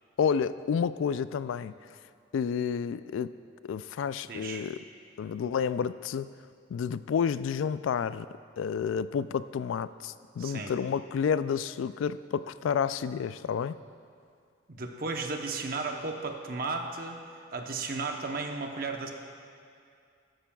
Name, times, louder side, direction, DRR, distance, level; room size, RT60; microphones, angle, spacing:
voice 1, 0.2-1.8 2.3-3.3 3.6-4.8 5.2-6.3 6.7-8.3 8.6-13.8, left 7 dB, 90° left, 14 dB, 0.3 m, -30 dB
voice 2, 4.2-4.6 10.4-10.7 14.7-17.2 17.5-19.1, right 3 dB, 50° right, 3 dB, 0.8 m, -34 dB
13.5 x 12.5 x 2.3 m, 2.4 s
head